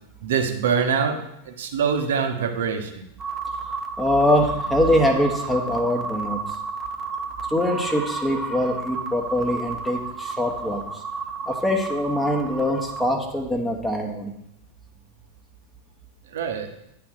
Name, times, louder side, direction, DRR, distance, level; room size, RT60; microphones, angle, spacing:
voice 1, 0.2-3.0 16.3-16.7, right 6 dB, 60° right, 5 dB, 0.9 m, -24 dB
sound 1, 3.2-13.0, right 4 dB, 15° right, 0.9 m, -32 dB
voice 2, 4.0-6.4 7.5-10.8 11.4-14.3, left 1 dB, 5° left, 1 dB, 1.1 m, -23 dB
9.8 x 3.5 x 6.2 m, 0.81 s
figure-of-eight pair, 90°, 0 cm